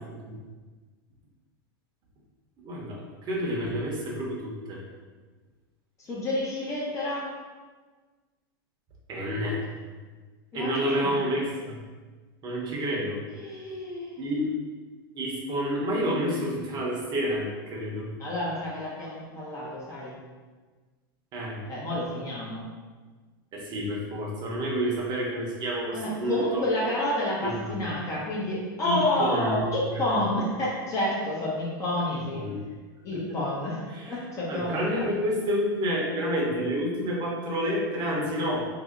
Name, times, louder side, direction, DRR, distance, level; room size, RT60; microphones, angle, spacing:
voice 1, 2.6-4.8 9.1-9.6 10.5-11.8 12.4-13.2 14.1-14.5 15.1-18.1 21.3-21.6 23.5-26.6 27.4-27.8 28.8-29.6 29.9-30.0 32.3-32.6 33.3-33.4 33.9-34.1 34.5-38.7, equal, 35° right, -3 dB, 1.0 m, -29 dB
voice 2, 6.0-7.3 9.3-9.5 10.5-11.1 13.3-14.3 18.2-20.1 21.7-22.7 25.9-32.5 33.0-35.1, left 1 dB, 25° left, -6 dB, 0.9 m, -30 dB
2.8 x 2.7 x 3.7 m, 1.4 s
supercardioid pair, 125°, 12 cm